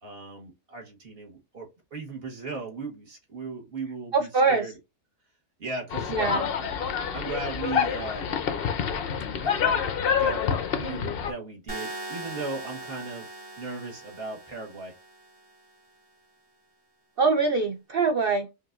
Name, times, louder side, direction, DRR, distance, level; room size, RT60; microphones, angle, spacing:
voice 1, 0.0-4.8 5.6-6.6 7.1-8.4 9.4-9.9 10.2-13.3 13.6-14.9, right 3 dB, 40° right, 1.4 m, -37 dB
voice 2, 4.1-4.7 6.1-6.5 17.2-18.5, right 4 dB, 65° right, 0.5 m, -23 dB
sound 1, 5.9-11.3, left 7 dB, 60° left, 0.6 m, -27 dB
sound 2, 11.7-15.7, right 2 dB, 25° right, 1.5 m, -40 dB
5.4 x 2.6 x 2.4 m
omnidirectional pair, 1.7 m